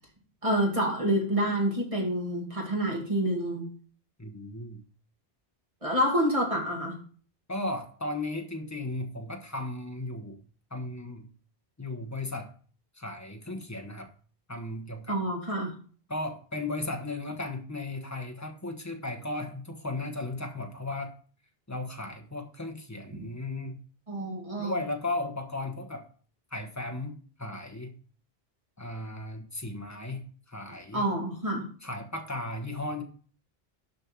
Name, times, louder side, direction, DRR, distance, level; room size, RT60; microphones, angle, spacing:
voice 1, 0.4-3.7 5.8-6.9 15.1-15.7 24.1-24.8 30.9-31.6, right 1 dB, 35° right, 2.3 m, -28 dB
voice 2, 4.2-4.8 7.5-10.4 10.7-11.3 11.8-12.5 13.0-14.1 14.5-15.2 16.1-21.2 21.7-23.8 24.6-26.1 26.5-27.9 28.8-31.1 31.8-33.0, left 2 dB, 15° left, 1.1 m, -35 dB
6.7 x 5.5 x 5.9 m
omnidirectional pair, 1.0 m